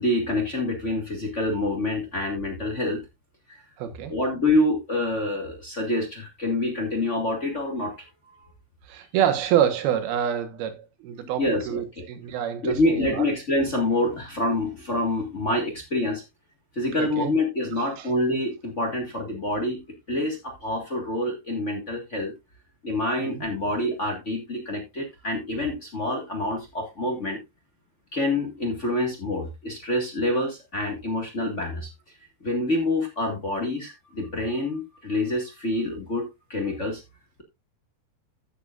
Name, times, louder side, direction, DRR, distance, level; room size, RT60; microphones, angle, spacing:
voice 1, 0.0-3.0 4.1-8.0 11.4-12.0 12.6-16.2 16.7-19.8 20.1-22.3 22.8-27.4 28.1-31.9 32.4-37.0, left 1 dB, 35° left, 1.1 m, -26 dB
voice 2, 3.8-4.1 8.9-13.3 17.0-17.3 17.8-18.1 23.2-23.5, right 10 dB, 80° right, 3.2 m, -27 dB
14.5 x 6.9 x 2.5 m
omnidirectional pair, 4.4 m